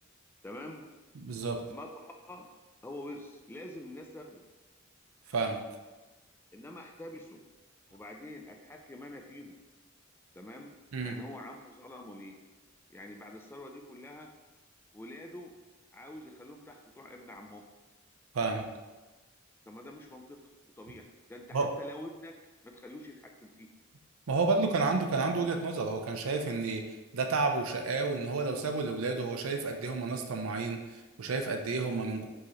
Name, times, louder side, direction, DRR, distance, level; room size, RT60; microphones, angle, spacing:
voice 1, 0.4-0.9 1.7-2.5 2.8-4.4 6.5-7.4 7.9-9.6 10.4-12.4 12.9-14.3 14.9-15.5 15.9-17.7 19.7-22.4 22.6-23.7, left 1 dB, 10° left, 2 dB, 0.3 m, -46 dB
voice 2, 1.2-1.6 5.3-5.6 10.9-11.2 18.3-18.6 21.5-21.7 24.3-26.8 27.1-32.3, right 3 dB, 85° right, 4 dB, 0.5 m, -30 dB
4.6 x 2.8 x 3.1 m, 1.2 s
head